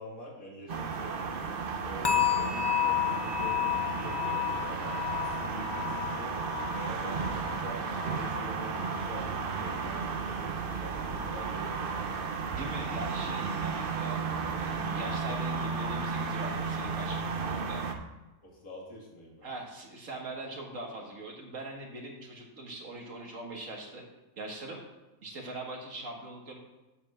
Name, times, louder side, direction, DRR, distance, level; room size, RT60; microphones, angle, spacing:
voice 1, 0.0-1.4 1.8-5.0 5.3-6.5 6.7-12.3 18.4-19.5, equal, 85° left, -3 dB, 2.7 m, -45 dB
sound 1, 0.7-17.9, right 5 dB, 50° right, 0.8 m, -34 dB
sound 2, 2.0-9.1 9.4-9.8 10.3-10.4, left 11 dB, 40° left, 0.3 m, -32 dB
voice 2, 12.5-14.2 14.6-17.8 19.4-24.0 24.4-24.8 25.2-26.6, right 2 dB, 70° right, 0 dB, 2.1 m, -41 dB
8.5 x 4.6 x 7.1 m, 1.1 s
omnidirectional pair, 1.4 m